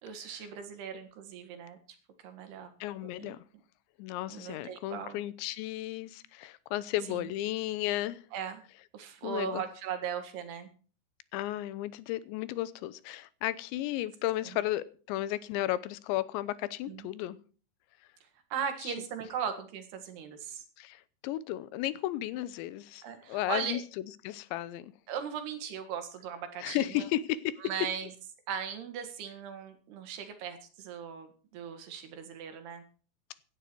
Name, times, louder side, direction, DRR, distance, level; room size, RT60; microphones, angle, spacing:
voice 1, 0.0-1.8 2.2-2.7 3.0-3.4 4.3-5.2 7.1-7.3 8.3-8.6 8.9-10.7 16.9-17.1 18.5-20.7 23.0-23.8 25.1-27.1 27.6-28.1 28.5-32.8, right 7 dB, 70° right, 3.6 m, -38 dB
voice 2, 2.8-3.4 4.0-8.2 9.2-9.6 11.3-17.4 18.8-18.9 20.8-23.8 24.2-24.9 26.6-27.6, left 14 dB, 90° left, 3.1 m, -34 dB
16.5 x 11.5 x 4.5 m
omnidirectional pair, 5.1 m